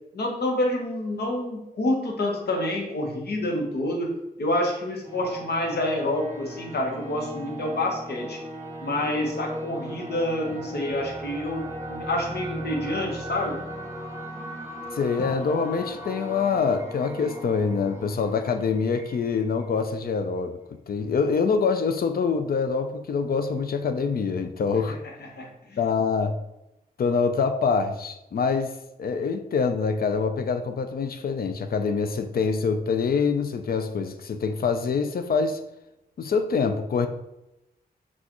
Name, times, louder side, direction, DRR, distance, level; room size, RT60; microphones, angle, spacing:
voice 1, 0.1-8.4 8.8-13.6 25.4-25.8, left 1 dB, 80° left, 0 dB, 1.0 m, -28 dB
sound 1, 5.0-20.4, right 1 dB, 15° right, 0.8 m, -38 dB
voice 2, 14.9-20.6 20.9-25.0 25.8-26.3 27.0-28.7 29.0-35.6 36.2-37.1, left 5 dB, 65° left, 7 dB, 0.5 m, -25 dB
6.2 x 2.4 x 2.9 m, 0.92 s
wide cardioid pair, 85°, 17 cm